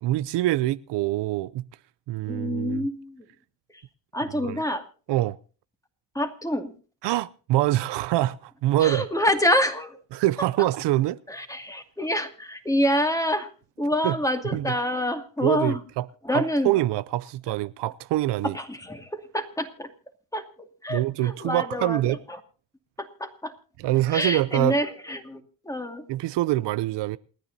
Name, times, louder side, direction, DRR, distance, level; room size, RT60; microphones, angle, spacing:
voice 1, 0.0-1.7 2.1-2.9 4.4-4.5 5.1-5.4 7.0-9.0 10.1-11.2 14.0-14.2 14.5-14.6 15.4-16.1 16.3-18.5 20.9-22.2 23.8-24.8 26.1-27.2, right 15 dB, 80° right, 0.6 m, -25 dB
voice 2, 2.3-3.2 3.7-3.8 4.1-4.9 6.1-6.7 8.8-10.0 11.3-13.5 13.8-15.8 16.2-16.7 17.5-17.6 18.4-19.9 20.3-22.4 23.0-23.5 24.1-26.0, left 1 dB, 10° left, 2.3 m, -27 dB
28.5 x 10.0 x 2.7 m
cardioid pair, 75°, 42 cm